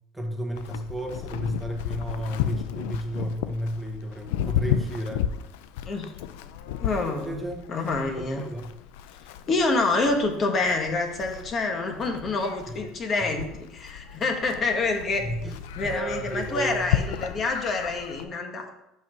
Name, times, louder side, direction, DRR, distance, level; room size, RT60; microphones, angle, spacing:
voice 1, 0.1-5.3 7.2-7.7 8.2-8.7 12.7-12.8 15.2-16.9, right 1 dB, 5° right, 0 dB, 1.2 m, -32 dB
Livestock farm animals working animals, 0.6-18.2, left 10 dB, 85° left, 0.4 m, -33 dB
voice 2, 6.8-7.4 7.7-8.4 9.5-15.2 15.8-18.8, left 3 dB, 35° left, 3 dB, 1.1 m, -27 dB
5.8 x 4.5 x 6.1 m, 0.84 s
supercardioid pair, 120°, 0 cm